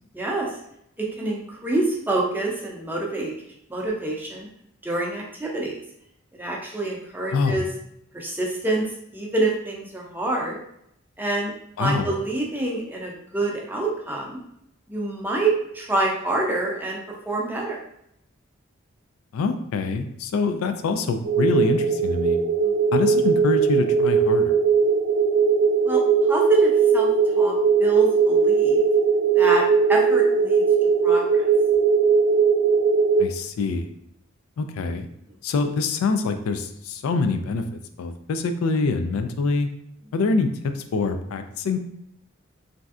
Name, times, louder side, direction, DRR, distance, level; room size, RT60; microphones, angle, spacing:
voice 1, 0.1-0.6 1.0-3.3 3.7-4.5 4.8-5.8 6.3-7.7 8.1-10.6 11.2-11.5 11.8-14.4 14.9-17.0 17.3-17.8 22.6-22.7 25.8-26.0 26.3-27.5 27.8-28.8 29.3-30.6 31.0-31.5, right 2 dB, 10° right, -2 dB, 0.5 m, -26 dB
voice 2, 19.3-22.4 22.9-24.6 33.2-33.9 34.6-35.1 35.4-39.7 40.1-41.8, left 4 dB, 90° left, 8 dB, 0.3 m, -25 dB
sound 1, 21.2-33.2, right 5 dB, 85° right, 0.5 m, -19 dB
3.1 x 2.6 x 2.3 m, 0.74 s
head